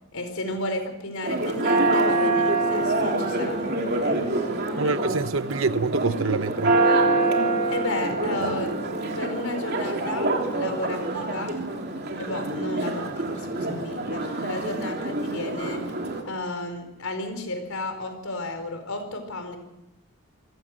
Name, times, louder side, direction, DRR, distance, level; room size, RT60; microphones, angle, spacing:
voice 1, 0.1-4.9 7.3-8.8 9.1-11.6 12.1-15.8 16.2-19.6, left 2 dB, 80° left, 4.6 m, -33 dB
Church bell, 1.2-16.2, right 2 dB, 50° right, 3.4 m, -25 dB
voice 2, 4.7-6.8, right 3 dB, 70° right, 0.9 m, -26 dB
26.5 x 16.0 x 6.4 m
head